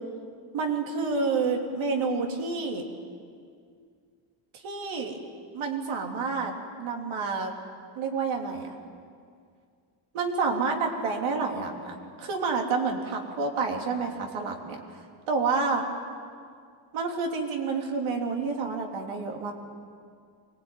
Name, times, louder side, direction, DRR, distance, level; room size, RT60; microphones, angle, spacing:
voice 1, 0.5-2.8 4.6-5.2 5.5-6.5 6.8-7.5 7.9-8.8 10.1-14.8 15.3-15.8 16.9-19.5, right 4 dB, 90° right, 2 dB, 3.4 m, -29 dB
24.0 x 20.0 x 9.3 m, 2.2 s
cardioid pair, 120°, 47 cm